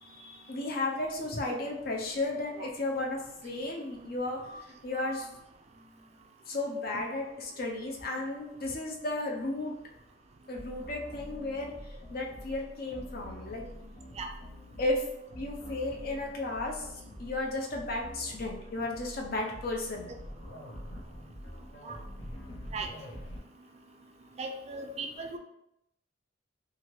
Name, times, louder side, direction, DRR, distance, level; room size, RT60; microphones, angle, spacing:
voice 1, 0.0-5.3 6.5-9.7 10.5-13.6 14.8-15.1 15.4-16.9 17.2-20.1, left 2 dB, 55° left, 0 dB, 0.6 m, -34 dB
sound 1, 10.5-23.4, equal, 85° left, 0.8 m, -46 dB
voice 2, 24.4-25.4, right 3 dB, 35° right, 4 dB, 0.3 m, -38 dB
2.8 x 2.5 x 3.0 m, 0.80 s
head